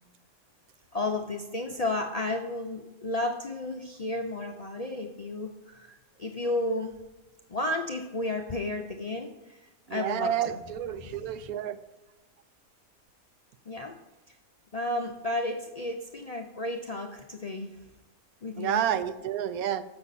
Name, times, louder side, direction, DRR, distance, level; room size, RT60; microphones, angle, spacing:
voice 1, 0.9-6.9 7.5-10.6 11.0-11.3 13.7-14.0 14.3-14.4 14.7-17.7 18.4-18.8, left 2 dB, 45° left, 1 dB, 0.5 m, -33 dB
voice 2, 9.9-11.8 18.6-19.8, right 10 dB, 85° right, 12 dB, 1.0 m, -30 dB
7.6 x 6.1 x 4.1 m, 1.1 s
omnidirectional pair, 1.5 m